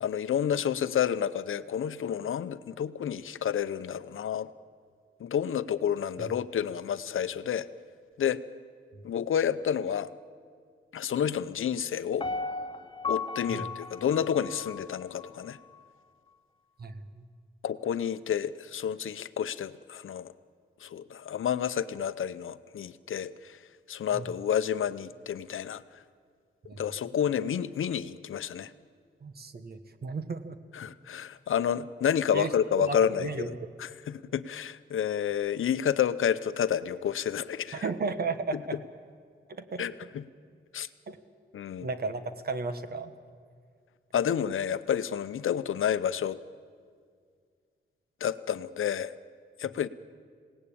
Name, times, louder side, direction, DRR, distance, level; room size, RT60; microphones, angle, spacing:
voice 1, 0.0-4.5 5.2-7.7 8.2-8.4 9.0-10.1 10.9-12.3 13.1-15.6 17.6-20.3 20.8-23.6 23.9-25.8 26.8-28.7 30.7-37.8 39.8-40.2 40.7-40.9 41.5-41.9 44.1-46.4 48.2-49.1 49.6-49.9, left 8 dB, 75° left, 13 dB, 0.7 m, -30 dB
Piano, 12.2-15.3 15.7-15.8, left 4 dB, 25° left, 0.7 m, -35 dB
voice 2, 16.8-17.2 24.1-24.3 26.7-26.8 29.2-30.6 32.3-32.5 32.8-33.7 37.7-38.8 39.5-39.9 41.1-41.2 41.8-43.1, right 4 dB, 50° right, 10 dB, 1.3 m, -34 dB
27.5 x 18.0 x 8.7 m, 2.1 s
wide cardioid pair, 160°, 21 cm